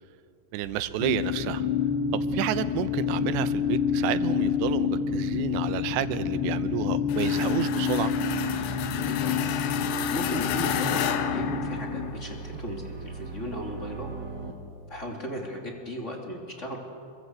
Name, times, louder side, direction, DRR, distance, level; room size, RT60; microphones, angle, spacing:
voice 1, 0.5-1.6 2.3-8.1, right 13 dB, 80° right, 13 dB, 2.9 m, -30 dB
sound 1, 0.6-14.5, right 5 dB, 35° right, 2.0 m, -43 dB
sound 2, 1.0-12.1, left 7 dB, 65° left, 3.1 m, -28 dB
sound 3, 7.1-12.3, left 9 dB, 85° left, 3.5 m, -32 dB
voice 2, 9.0-14.1 14.9-16.8, equal, 20° left, 1 dB, 2.2 m, -36 dB
28.5 x 22.5 x 8.0 m, 2.5 s
omnidirectional pair, 5.2 m